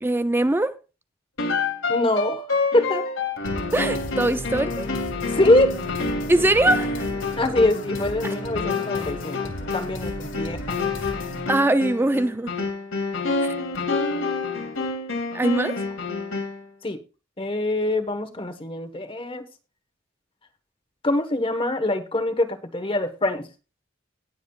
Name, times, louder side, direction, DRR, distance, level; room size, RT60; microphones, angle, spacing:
voice 1, 0.0-0.8 3.7-4.9 6.3-7.1 11.5-12.5 13.4-13.6 15.3-15.8, right 1 dB, 10° right, 0.4 m, -22 dB
sound 1, 1.4-16.7, left 3 dB, 85° left, 2.8 m, -28 dB
voice 2, 1.9-2.4 2.7-3.1 5.3-5.7 7.4-10.8 16.8-17.0 17.4-19.5 21.0-23.5, left 2 dB, 25° left, 1.2 m, -23 dB
sound 2, 3.5-11.5, left 1 dB, 70° left, 2.0 m, -35 dB
19.0 x 7.3 x 2.3 m
head